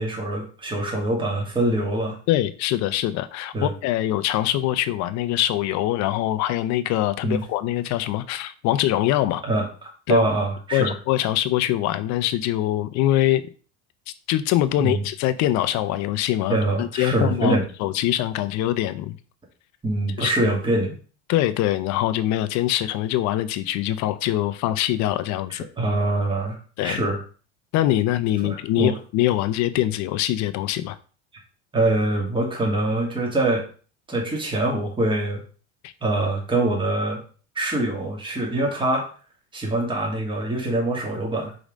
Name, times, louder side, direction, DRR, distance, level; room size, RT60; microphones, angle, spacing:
voice 1, 0.0-2.2 3.5-3.7 7.2-7.5 9.4-9.7 10.1-11.0 14.8-15.0 16.5-17.7 19.8-20.9 25.8-26.6 26.8-27.2 28.4-29.0 31.7-33.6 34.1-35.4 36.0-37.2 37.6-39.1 39.5-41.5, right 2 dB, 15° right, -1 dB, 2.3 m, -24 dB
voice 2, 2.3-9.4 10.1-10.2 10.7-13.5 14.3-19.2 20.2-20.3 21.3-25.6 26.8-27.0 27.7-31.0 35.8-35.9, left 13 dB, 55° left, 13 dB, 0.7 m, -23 dB
5.1 x 4.0 x 5.1 m, 0.39 s
supercardioid pair, 115°, 35 cm